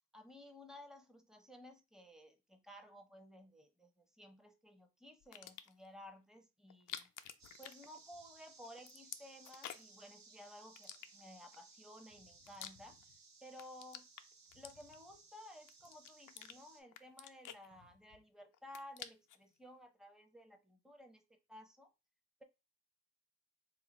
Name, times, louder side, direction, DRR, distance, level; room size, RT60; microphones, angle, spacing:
voice 1, 0.1-7.1 7.6-13.0 13.4-14.1 14.5-21.9, left 1 dB, ahead, 0.8 m, -56 dB
sound 1, 5.2-5.9 6.7-8.4 8.6-10.0 10.8-11.6 12.1-13.2 13.5-15.2 15.7-16.6 16.9-18.2 18.5-19.4, left 10 dB, 75° left, 0.5 m, -51 dB
sound 2, 7.4-16.8, right 4 dB, 60° right, 0.9 m, -62 dB
2.8 x 2.5 x 4.1 m
supercardioid pair, 50°, 31 cm